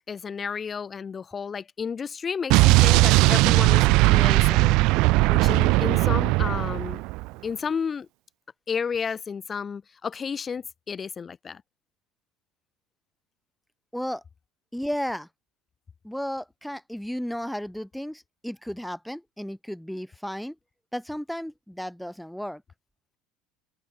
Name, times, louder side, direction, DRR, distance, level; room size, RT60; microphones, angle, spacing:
voice 1, 0.0-4.8 5.3-7.0 7.4-8.1 8.7-11.6, left 6 dB, 30° left, 4.1 m, -32 dB
Explosion, 2.5-7.3, right 23 dB, 60° right, 0.5 m, -19 dB
voice 2, 13.9-14.2 14.7-15.3 16.0-20.6 20.9-22.6, equal, ahead, 3.5 m, -33 dB
open air
hypercardioid pair, 75°, 0 cm